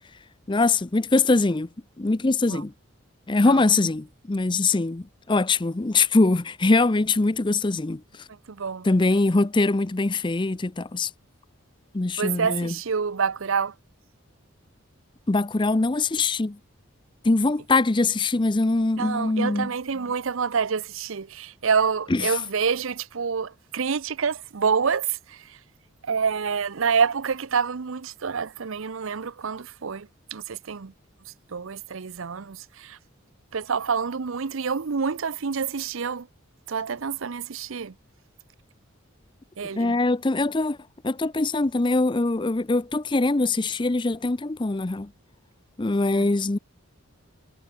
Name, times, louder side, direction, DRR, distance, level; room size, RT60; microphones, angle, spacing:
voice 1, 0.5-1.7 2.0-2.7 3.3-8.0 8.8-11.1 11.9-12.7 15.3-16.6 17.2-19.7 22.1-22.4 39.8-40.8 41.0-45.1 45.8-46.6, left 3 dB, 20° left, 0.5 m, -22 dB
voice 2, 8.5-8.9 12.2-13.7 19.0-25.4 26.0-30.9 31.5-33.0 33.5-36.3 36.7-37.9 39.6-40.0 46.1-46.3, right 6 dB, 70° right, 0.6 m, -27 dB
head